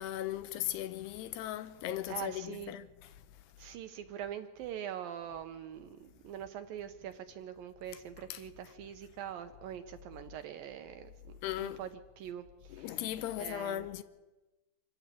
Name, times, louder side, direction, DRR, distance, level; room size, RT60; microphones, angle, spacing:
voice 1, 0.0-2.9 8.3-8.4 11.4-11.8 12.8-14.0, left 12 dB, 80° left, 2.8 m, -37 dB
voice 2, 2.1-2.8 3.6-11.9 12.2-13.0 13.4-13.9, right 10 dB, 75° right, 2.2 m, -43 dB
26.0 x 15.0 x 8.3 m
omnidirectional pair, 4.8 m